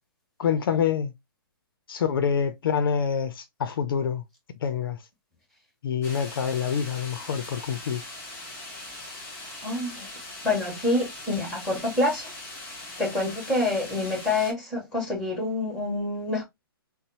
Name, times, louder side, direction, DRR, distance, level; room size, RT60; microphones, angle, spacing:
voice 1, 0.4-1.1 1.9-4.2 4.6-5.0 5.8-8.0, left 7 dB, 65° left, 0.5 m, -26 dB
sound 1, 6.0-14.5, left 2 dB, 20° left, 1.9 m, -41 dB
voice 2, 9.6-10.1 10.4-12.3 13.0-16.4, left 2 dB, 5° left, 1.7 m, -27 dB
4.0 x 2.1 x 2.7 m
hypercardioid pair, 140°, 12 cm